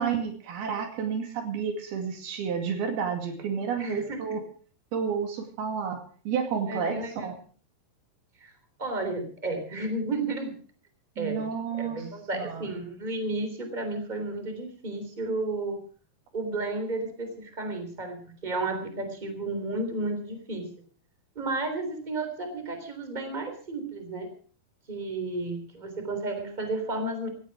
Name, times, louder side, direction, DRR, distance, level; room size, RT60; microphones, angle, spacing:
voice 1, 0.0-4.4 4.9-7.3 11.2-12.0 12.3-12.7, right 6 dB, 80° right, 5 dB, 4.3 m, -31 dB
voice 2, 3.8-4.4 6.7-7.3 8.4-8.5 8.8-10.5 11.1-11.4 11.8-15.8 16.3-20.7 21.3-24.3 24.9-27.3, right 2 dB, 10° right, 6 dB, 3.2 m, -32 dB
17.0 x 14.5 x 4.8 m, 0.42 s
omnidirectional pair, 4.4 m